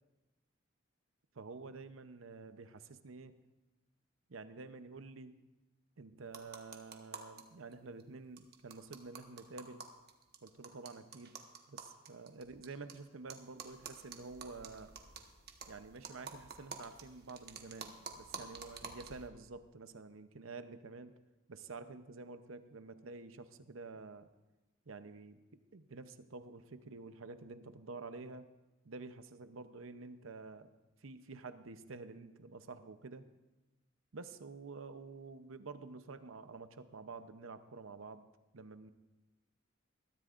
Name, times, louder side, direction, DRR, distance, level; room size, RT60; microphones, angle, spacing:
voice 1, 1.3-3.4 4.3-5.4 6.0-9.9 10.4-11.4 11.7-15.0 15.7-21.2 21.5-24.3 24.9-25.4 25.7-28.5 28.8-30.7 31.0-33.3 34.1-38.3 38.5-38.9, right 3 dB, 80° right, 11 dB, 0.7 m, -49 dB
sound 1, 6.3-7.4 7.7-8.0 8.4-12.9 13.3-19.3, right 5 dB, 50° right, 1.2 m, -49 dB
20.5 x 13.5 x 2.5 m, 1.1 s
head